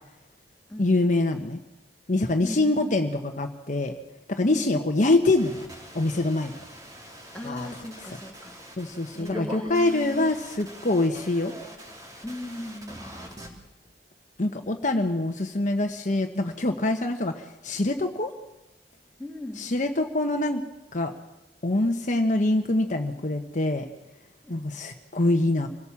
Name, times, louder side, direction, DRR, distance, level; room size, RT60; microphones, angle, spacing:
voice 1, 0.8-1.6 2.1-3.9 4.3-5.7 5.9-6.6 7.4-7.7 8.8-11.5 14.4-18.3 19.6-20.6 20.9-21.1 21.6-23.9 24.5-25.7, left 2 dB, 45° left, 5 dB, 1.2 m, -25 dB
voice 2, 2.4-3.0 4.5-4.8 7.3-8.6 9.1-10.4 12.2-13.6 19.2-19.7 24.4-24.8, left 1 dB, 5° left, 0 dB, 2.7 m, -37 dB
sound 1, 5.3-13.5, equal, 20° right, 3.6 m, -43 dB
26.5 x 17.5 x 7.2 m, 0.99 s
head